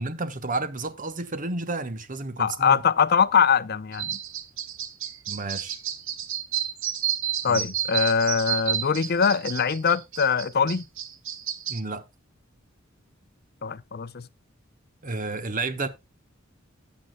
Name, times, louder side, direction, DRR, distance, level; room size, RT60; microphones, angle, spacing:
voice 1, 0.0-2.8 5.3-5.8 7.5-7.6 11.7-12.0 15.0-15.9, right 3 dB, 40° right, 1.2 m, -31 dB
voice 2, 2.4-4.2 7.4-10.8 13.6-14.3, left 6 dB, 50° left, 0.6 m, -22 dB
sound 1, 3.9-11.8, right 10 dB, 75° right, 1.1 m, -31 dB
14.5 x 8.5 x 2.3 m
head